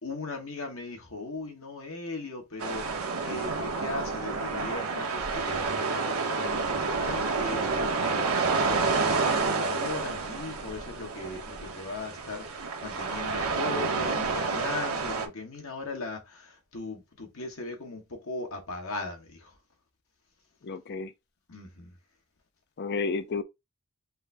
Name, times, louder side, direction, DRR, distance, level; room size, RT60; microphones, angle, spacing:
voice 1, 0.0-19.5 21.5-21.9, left 3 dB, 70° left, 1.4 m, -38 dB
sound 1, 2.6-15.3, right 4 dB, 90° right, 1.0 m, -29 dB
voice 2, 20.6-21.1 22.8-23.4, left 4 dB, 50° left, 0.5 m, -31 dB
5.3 x 2.7 x 3.4 m
head